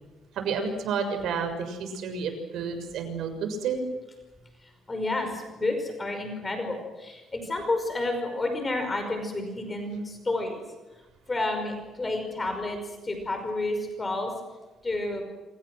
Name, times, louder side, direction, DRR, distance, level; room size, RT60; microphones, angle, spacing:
voice 1, 0.3-3.8, right 5 dB, 70° right, 7 dB, 6.7 m, -30 dB
voice 2, 4.6-10.6 11.3-14.3 14.8-15.2, left 2 dB, 20° left, 5 dB, 5.3 m, -30 dB
29.0 x 27.0 x 6.4 m, 1.1 s
cardioid pair, 140°, 0 cm